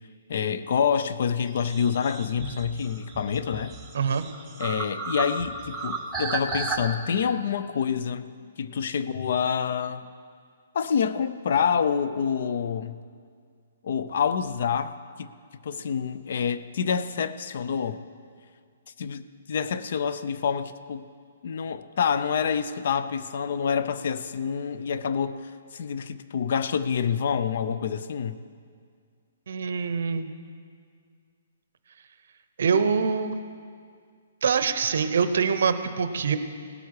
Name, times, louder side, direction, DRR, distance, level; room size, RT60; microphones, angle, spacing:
voice 1, 0.3-3.7 4.6-8.3 8.6-10.1 10.7-13.0 13.8-14.9 15.2-15.3 15.6-18.0 19.0-21.1 21.4-28.4, left 7 dB, 55° left, 13 dB, 0.5 m, -27 dB
sound 1, 1.5-6.8, right 4 dB, 10° right, 0.8 m, -33 dB
voice 2, 29.5-30.3 32.6-33.3 34.4-36.4, right 6 dB, 65° right, 11 dB, 0.8 m, -24 dB
18.0 x 8.3 x 4.8 m, 2.1 s
hypercardioid pair, 165°, 0 cm